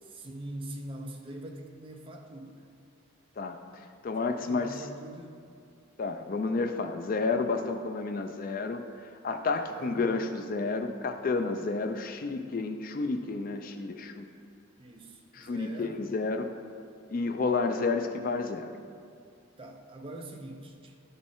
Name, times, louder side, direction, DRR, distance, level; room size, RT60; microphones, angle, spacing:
voice 1, 0.0-2.7 4.2-5.4 9.5-10.1 14.8-16.1 19.6-20.9, right 1 dB, 25° right, 2 dB, 0.5 m, -43 dB
voice 2, 4.0-4.8 6.0-14.3 15.3-16.5 17.1-18.7, left 3 dB, 40° left, 6 dB, 0.3 m, -31 dB
11.5 x 4.1 x 3.7 m, 2.3 s
head